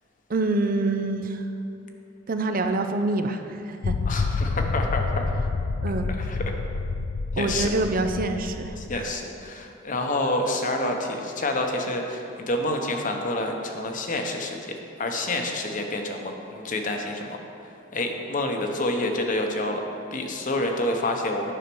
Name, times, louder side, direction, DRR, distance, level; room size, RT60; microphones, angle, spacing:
voice 1, 0.3-1.4 2.3-3.9 5.8-6.1 7.4-9.1, right 2 dB, 45° right, 6 dB, 0.5 m, -26 dB
sound 1, 3.8-9.1, left 4 dB, 75° left, 0.5 m, -28 dB
voice 2, 4.1-5.3 6.2-6.5 7.4-7.7 8.8-19.8 20.1-21.5, left 1 dB, 45° left, 3 dB, 0.9 m, -28 dB
10.0 x 5.7 x 6.2 m, 2.7 s
head